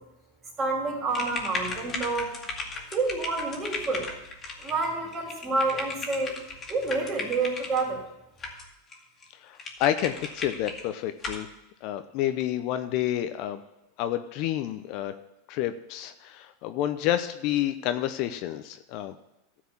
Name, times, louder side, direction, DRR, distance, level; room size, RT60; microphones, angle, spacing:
voice 1, 0.6-2.3 2.9-4.1 4.6-6.4 6.7-8.0, right 3 dB, 30° right, -2 dB, 3.6 m, -28 dB
sound 1, 1.1-7.8 8.4-8.9 9.2-9.3 9.6-10.8 11.2-11.5, left 3 dB, 25° left, 2.2 m, -36 dB
voice 2, 9.4-11.5 11.8-13.6 14.0-15.1 15.5-19.1, left 12 dB, 55° left, 10 dB, 0.7 m, -29 dB
13.0 x 4.7 x 7.2 m, 0.91 s
supercardioid pair, 120°, 0 cm